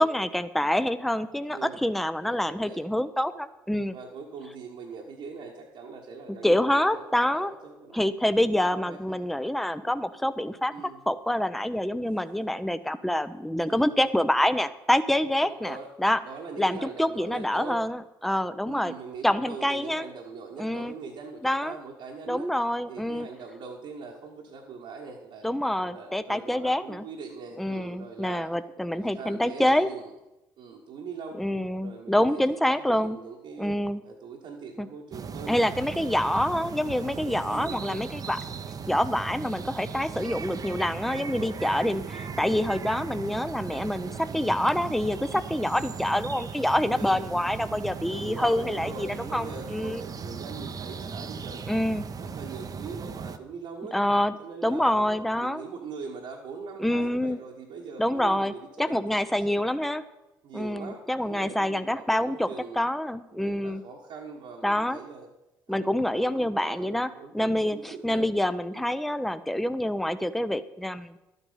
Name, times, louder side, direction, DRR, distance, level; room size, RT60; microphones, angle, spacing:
voice 1, 0.0-4.0 6.4-7.5 7.9-10.7 11.1-16.2 16.6-18.9 19.2-20.0 20.6-20.9 21.4-21.8 22.3-23.3 25.4-27.0 27.6-29.9 31.3-33.2 33.6-34.0 34.8-34.9 35.5-38.4 38.9-50.0 51.7-52.1 53.9-54.3 54.6-55.6 56.8-57.4 58.0-60.0 60.5-62.5 62.8-63.8 64.6-65.0 65.7-71.2, left 1 dB, ahead, 12 dB, 0.6 m, -26 dB
voice 2, 1.5-1.8 2.2-2.8 3.9-6.5 6.8-8.0 8.6-9.2 10.7-11.0 13.6-13.9 15.4-15.9 16.2-17.8 18.7-22.5 22.9-25.5 25.8-28.5 28.9-30.1 30.6-31.4 31.8-33.7 34.0-36.3 36.9-38.1 41.1-42.2 44.2-44.4 46.9-47.3 48.1-51.9 52.2-53.9 54.4-59.1 59.5-59.6 60.4-62.8 63.3-65.3 65.7-68.2 68.7-68.9, right 5 dB, 65° right, -1 dB, 1.4 m, -42 dB
sound 1, 35.1-53.4, right 5 dB, 40° right, 0.8 m, -38 dB
12.0 x 8.1 x 5.6 m, 0.97 s
hypercardioid pair, 55°, 10 cm